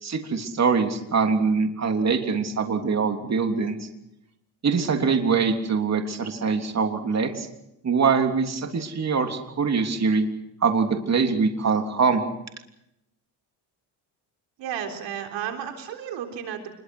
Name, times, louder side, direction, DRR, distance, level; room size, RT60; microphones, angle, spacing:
voice 1, 0.0-3.9 4.6-7.5 7.8-10.3 10.6-12.2, right 5 dB, 35° right, 5 dB, 3.3 m, -23 dB
voice 2, 14.6-16.7, right 9 dB, 75° right, 4 dB, 3.9 m, -33 dB
26.5 x 22.0 x 6.2 m, 0.83 s
cardioid pair, 100°, 44 cm